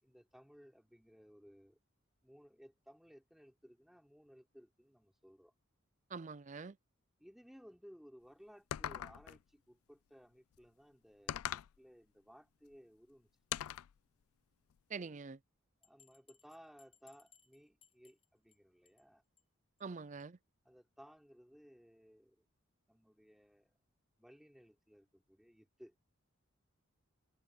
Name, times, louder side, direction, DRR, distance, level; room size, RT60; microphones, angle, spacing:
voice 1, 0.0-1.8 2.2-5.5 7.2-13.3 13.6-13.8 15.8-19.2 20.6-22.4 22.9-23.7 24.2-25.9, equal, ahead, 5.4 m, -60 dB
voice 2, 6.1-6.8 14.9-15.4 19.8-20.4, right 4 dB, 35° right, 0.5 m, -45 dB
sound 1, 8.7-9.4 11.3-11.8 13.5-13.9, left 10 dB, 85° left, 0.4 m, -40 dB
Bell, 15.8-18.6 18.9-19.1 19.4-19.5 19.8-19.9 20.2-20.3, left 7 dB, 25° left, 6.6 m, -68 dB
head